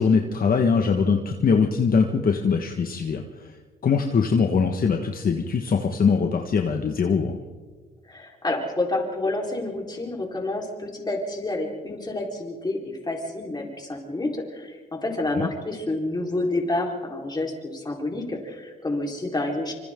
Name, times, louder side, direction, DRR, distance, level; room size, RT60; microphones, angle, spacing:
voice 1, 0.0-3.6 3.8-7.4 15.4-15.5, left 5 dB, 45° left, 3 dB, 1.5 m, -22 dB
voice 2, 8.0-19.7, left 2 dB, 20° left, -1 dB, 4.3 m, -29 dB
26.5 x 25.5 x 3.8 m, 1.4 s
cardioid pair, 90°, 20 cm